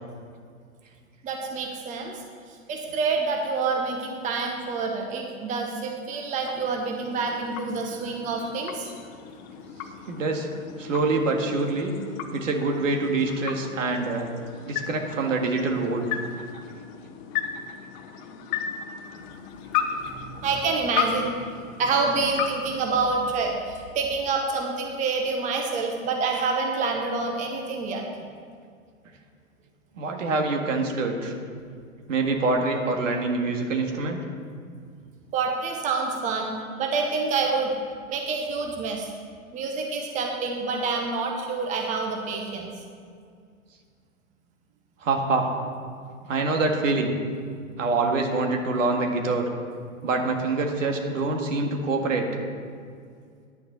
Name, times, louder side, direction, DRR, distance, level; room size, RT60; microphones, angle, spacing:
voice 1, 1.2-2.2 2.7-8.9 20.1-21.3 21.8-28.0 35.3-37.7 38.1-39.1 39.5-42.7, right 4 dB, 20° right, 2 dB, 1.0 m, -27 dB
sound 1, 5.9-23.7, left 8 dB, 35° left, 0.9 m, -35 dB
voice 2, 10.1-10.5 10.8-12.0 12.3-14.3 14.6-16.2 29.9-31.3 32.1-34.2 45.0-45.5 46.3-47.2 47.8-49.5 50.0-52.3, right 3 dB, 65° right, 3 dB, 1.9 m, -25 dB
10.5 x 6.8 x 6.9 m, 2.2 s
hypercardioid pair, 115°, 41 cm